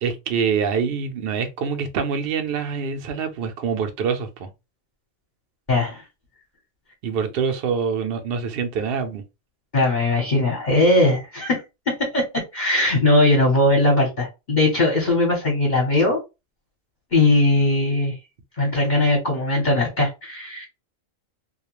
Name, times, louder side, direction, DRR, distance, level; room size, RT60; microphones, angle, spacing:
voice 1, 0.0-4.5 7.0-9.2, right 6 dB, 60° right, 0.6 m, -25 dB
voice 2, 5.7-6.0 9.7-16.2 17.1-18.1 18.6-20.7, left 2 dB, 40° left, 0.9 m, -20 dB
2.3 x 2.2 x 3.0 m
omnidirectional pair, 1.3 m